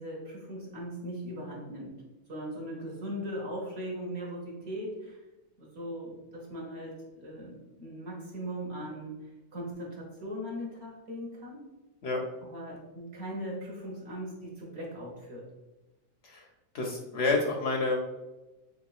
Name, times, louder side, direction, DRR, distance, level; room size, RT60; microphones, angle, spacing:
voice 1, 0.0-2.0 2.3-5.2 5.6-9.2 9.5-11.6 12.4-15.5, equal, 50° right, -2 dB, 1.2 m, -39 dB
voice 2, 16.7-18.0, left 3 dB, 65° left, 1 dB, 0.8 m, -29 dB
6.5 x 2.3 x 2.3 m, 1.1 s
omnidirectional pair, 1.5 m